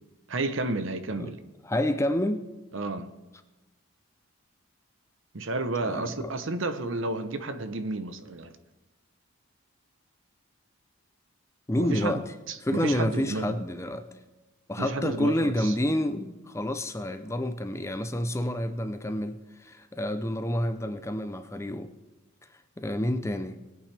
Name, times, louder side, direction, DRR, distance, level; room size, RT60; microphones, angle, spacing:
voice 1, 0.3-1.4 2.7-3.1 5.3-8.5 11.8-12.2 12.5-13.6 14.8-15.7, right 2 dB, 60° right, 0.8 m, -31 dB
voice 2, 1.6-2.4 5.8-6.4 11.7-12.3 12.6-14.1 14.7-21.9 22.8-23.6, left 1 dB, 15° left, 0.5 m, -29 dB
20.5 x 8.6 x 3.4 m
head